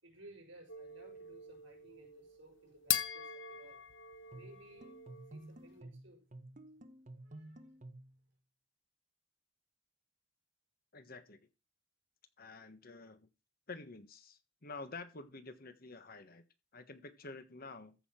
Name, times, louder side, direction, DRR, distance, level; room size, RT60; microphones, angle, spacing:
voice 1, 0.0-3.8 4.3-4.9 5.3-6.2 7.1-7.6, right 1 dB, 60° right, 6.1 m, -58 dB
sound 1, 0.7-5.5, left 9 dB, 60° left, 1.2 m, -41 dB
sound 2, 4.3-8.2, right 1 dB, 35° right, 1.1 m, -52 dB
voice 2, 10.9-11.4 12.4-13.3 13.7-16.4 16.7-17.9, left 3 dB, 45° left, 1.4 m, -49 dB
14.5 x 5.5 x 5.8 m
head